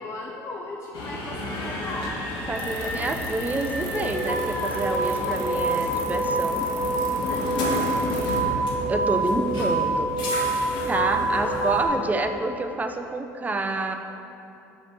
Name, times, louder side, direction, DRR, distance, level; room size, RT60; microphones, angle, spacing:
voice 1, 0.0-2.2 7.2-8.7 11.1-12.2, left 2 dB, 30° left, -1 dB, 0.7 m, -37 dB
sound 1, 0.9-11.9, right 1 dB, 60° left, 1.3 m, -27 dB
Screaming, 1.5-4.8, left 1 dB, 10° left, 1.4 m, -37 dB
voice 2, 2.5-6.7 8.9-10.1 10.9-13.9, right 2 dB, 15° right, 6 dB, 0.5 m, -28 dB
sound 2, 2.5-8.4, right 8 dB, 80° right, 1.0 m, -42 dB
6.3 x 5.0 x 4.4 m, 2.7 s
hypercardioid pair, 70°, 9 cm